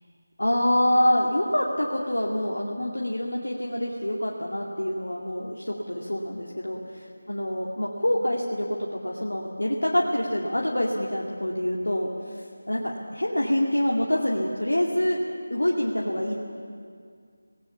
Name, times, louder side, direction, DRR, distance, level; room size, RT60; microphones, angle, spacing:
voice 1, 0.4-15.2 15.5-16.4, left 1 dB, 75° left, -2 dB, 2.4 m, -26 dB
27.0 x 18.5 x 7.1 m, 2.1 s
figure-of-eight pair, 165°, 0 cm